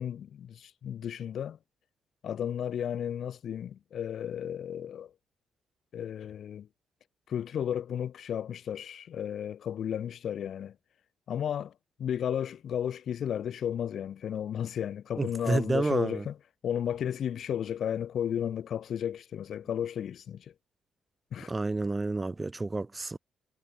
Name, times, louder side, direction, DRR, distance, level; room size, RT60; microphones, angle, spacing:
voice 1, 0.0-1.6 2.2-5.1 5.9-6.7 7.3-10.7 11.3-11.7 12.0-16.3 16.6-20.4 21.3-21.5, left 9 dB, 65° left, 2.9 m, -33 dB
voice 2, 15.2-16.2 21.5-23.2, right 3 dB, 20° right, 2.5 m, -30 dB
cardioid pair, 90°, 0 cm